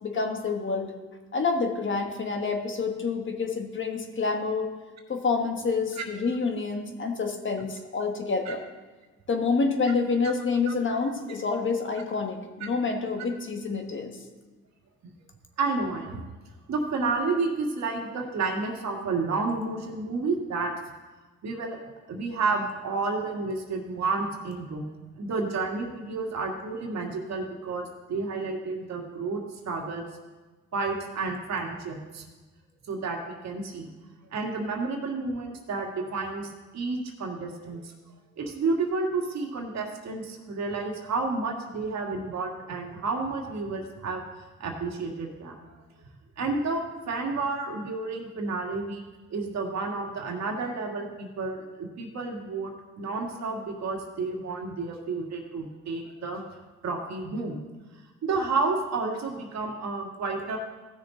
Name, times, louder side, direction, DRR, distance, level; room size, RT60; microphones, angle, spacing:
voice 1, 0.0-0.9 1.3-4.7 5.1-8.6 9.3-14.1, left 4 dB, 40° left, 4 dB, 1.4 m, -28 dB
voice 2, 10.7-11.0 12.6-12.7 15.6-16.2 16.7-20.7 21.4-21.8 22.1-24.8 25.2-30.1 30.7-32.2 32.9-33.9 34.3-37.9 38.4-44.2 44.6-45.8 46.4-49.0 49.3-56.4 56.8-57.6 58.2-60.6, right 3 dB, 60° right, 1 dB, 1.9 m, -31 dB
16.0 x 6.4 x 3.9 m, 1.2 s
cardioid pair, 90°, 30 cm